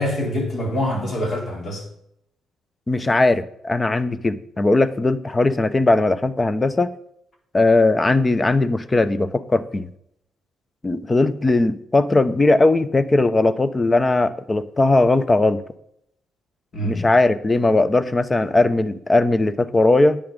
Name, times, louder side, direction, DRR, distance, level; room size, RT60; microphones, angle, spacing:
voice 1, 0.0-1.8 16.7-17.1, left 1 dB, 50° left, 4.1 m, -25 dB
voice 2, 2.9-6.9 7.5-9.9 10.8-15.6 16.8-20.2, left 2 dB, 25° left, 0.9 m, -18 dB
10.5 x 9.2 x 5.3 m
cardioid pair, 90°, 0 cm